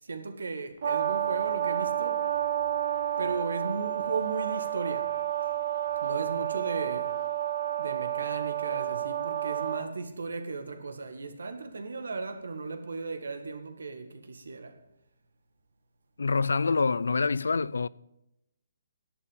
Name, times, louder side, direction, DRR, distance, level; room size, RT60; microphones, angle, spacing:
voice 1, 0.0-2.2 3.2-5.2 6.0-7.2 7.8-14.8, right 4 dB, 85° right, 1.9 m, -36 dB
Brass instrument, 0.8-9.8, right 11 dB, 60° right, 1.7 m, -30 dB
voice 2, 16.2-17.9, left 4 dB, 85° left, 0.4 m, -26 dB
11.0 x 8.6 x 8.4 m
hypercardioid pair, 155°, 0 cm